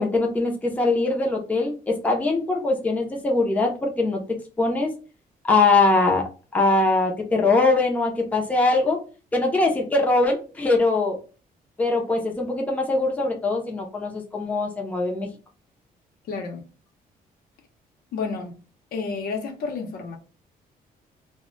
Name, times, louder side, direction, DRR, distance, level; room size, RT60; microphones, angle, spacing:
voice 1, 0.0-4.2 4.6-4.9 5.4-6.2 6.5-9.0 9.3-11.2 11.8-15.3, left 3 dB, 10° left, 0.5 m, -22 dB
voice 2, 16.3-16.6 18.1-18.6 18.9-20.2, left 4 dB, 75° left, 0.7 m, -30 dB
2.1 x 2.1 x 3.7 m
cardioid pair, 160°, 16 cm